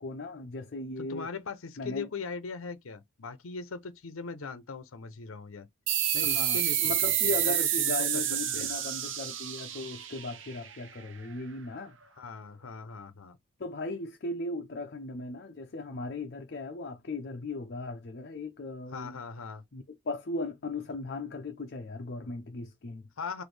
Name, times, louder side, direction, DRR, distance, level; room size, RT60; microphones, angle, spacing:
voice 1, 0.0-1.3 1.8-2.1 6.2-12.0 13.6-19.2 19.7-23.0, left 2 dB, 50° left, 0.5 m, -37 dB
voice 2, 1.0-5.7 6.1-8.2 8.5-8.7 12.2-13.4 18.9-19.6 23.2-23.4, left 4 dB, 90° left, 0.7 m, -40 dB
sound 1, 5.9-11.0, right 10 dB, 65° right, 0.7 m, -29 dB
4.2 x 2.6 x 3.2 m
head